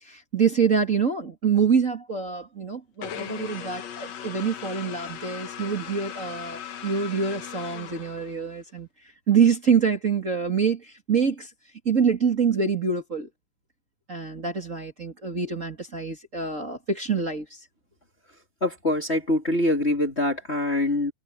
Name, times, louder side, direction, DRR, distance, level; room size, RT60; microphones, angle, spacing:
voice 1, 0.0-8.9 9.3-11.5 11.8-13.3 14.1-17.6, right 6 dB, 45° right, 1.0 m, -25 dB
sound 1, 3.0-8.6, left 9 dB, 60° left, 1.8 m, -38 dB
voice 2, 18.6-21.1, left 1 dB, 25° left, 1.4 m, -24 dB
omnidirectional pair, 5.3 m